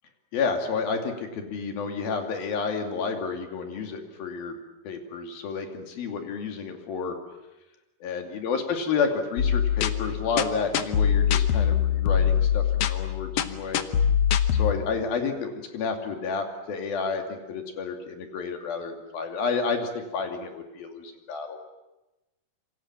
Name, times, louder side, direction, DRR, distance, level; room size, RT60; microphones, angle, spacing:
voice 1, 0.3-4.6 4.8-7.2 8.0-13.8 14.5-21.6, left 5 dB, 90° left, 5 dB, 4.5 m, -30 dB
sound 1, 9.4-14.7, left 8 dB, 60° left, 1.8 m, -23 dB
27.5 x 25.0 x 7.4 m, 1.0 s
omnidirectional pair, 4.1 m